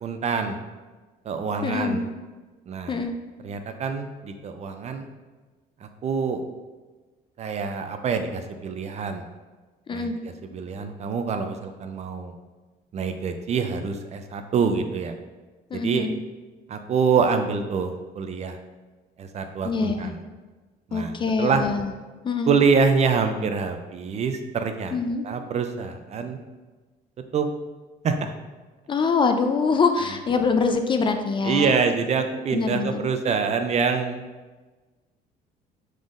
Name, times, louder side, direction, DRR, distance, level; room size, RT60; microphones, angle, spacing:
voice 1, 0.0-0.6 1.3-2.1 2.7-3.0 3.4-5.1 5.8-6.4 7.4-9.3 9.9-12.3 12.9-15.1 15.7-16.1 16.7-18.6 19.2-20.2 20.9-21.6 22.5-25.0 25.2-26.4 27.3-27.5 28.0-28.3 31.4-34.2, right 5 dB, 40° right, 7 dB, 0.4 m, -25 dB
voice 2, 1.6-2.0 2.9-3.1 9.9-10.2 15.7-16.1 19.6-20.1 20.9-21.9 22.2-22.5 24.9-25.3 28.9-31.7 32.5-33.1, left 4 dB, 30° left, 6 dB, 0.4 m, -24 dB
5.2 x 3.7 x 2.5 m, 1.3 s
cardioid pair, 110°, 17 cm